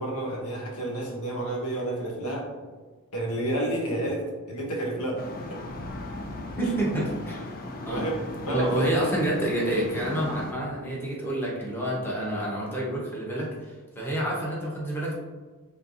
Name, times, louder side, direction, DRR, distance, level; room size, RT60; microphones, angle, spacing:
voice 1, 0.0-2.5 3.1-5.6 7.9-8.2 8.5-9.0, right 1 dB, 75° left, 0 dB, 0.9 m, -30 dB
sound 1, 5.2-10.5, left 2 dB, 40° left, 0.5 m, -37 dB
voice 2, 6.6-7.4 7.9-8.1 8.4-15.1, right 1 dB, 10° left, -5 dB, 1.0 m, -28 dB
4.5 x 3.5 x 2.6 m, 1.3 s
head